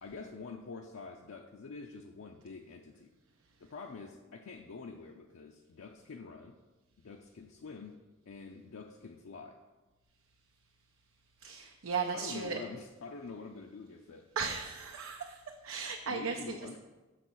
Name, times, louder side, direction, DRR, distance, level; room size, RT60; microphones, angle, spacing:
voice 1, 0.0-3.1 3.6-6.6 7.0-8.0 8.3-9.6 12.1-14.3 16.1-16.8, left 4 dB, 75° left, 2 dB, 0.5 m, -46 dB
voice 2, 11.4-12.6 14.4-16.3, right 5 dB, 85° right, 4 dB, 0.5 m, -36 dB
6.7 x 4.1 x 6.2 m, 1.2 s
head